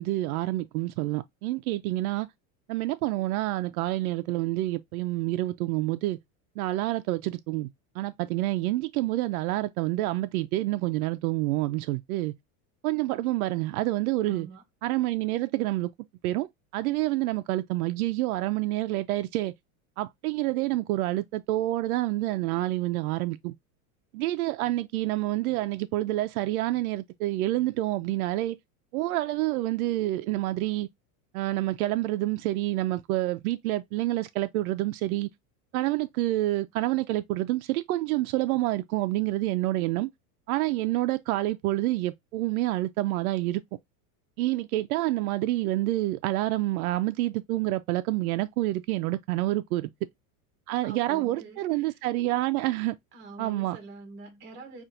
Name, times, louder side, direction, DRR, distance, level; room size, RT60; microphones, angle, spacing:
voice 1, 0.0-2.3 2.7-6.2 6.6-7.7 8.0-12.3 12.8-14.5 14.8-15.9 16.2-16.5 16.7-19.5 20.0-23.5 24.1-28.6 28.9-30.9 31.3-35.3 35.7-40.1 40.5-43.6 44.4-49.9 50.7-53.0 53.4-53.8, right 17 dB, 80° right, 0.5 m, -28 dB
voice 2, 14.2-14.6 50.8-51.9 53.1-54.8, right 3 dB, 25° right, 1.0 m, -45 dB
5.6 x 2.5 x 2.5 m
supercardioid pair, 170°, 43 cm